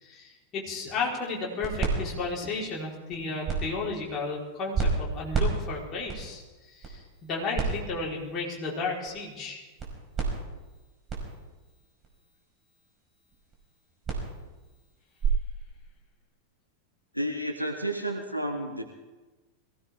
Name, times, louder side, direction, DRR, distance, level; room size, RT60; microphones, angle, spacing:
voice 1, 0.0-6.4 6.7-9.6, left 3 dB, 30° left, -4 dB, 4.3 m, -33 dB
sound 1, 0.8-15.3, right 4 dB, 25° right, 5.2 m, -34 dB
voice 2, 17.1-18.8, right 1 dB, 90° left, 5 dB, 1.2 m, -31 dB
22.0 x 16.5 x 3.6 m, 1.2 s
figure-of-eight pair, 90°, 0 cm